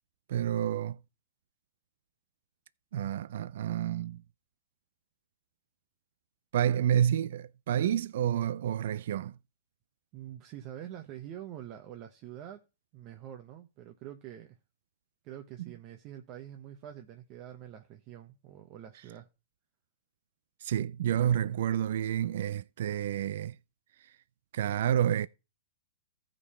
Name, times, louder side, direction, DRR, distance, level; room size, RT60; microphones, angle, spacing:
voice 1, 0.3-1.0 2.9-4.2 6.5-9.3 20.6-23.6 24.5-25.3, right 10 dB, 65° right, 0.4 m, -29 dB
voice 2, 10.1-12.6 12.9-14.6 15.2-19.3, right 11 dB, 35° right, 1.0 m, -46 dB
14.5 x 5.3 x 4.3 m
hypercardioid pair, 140°, 0 cm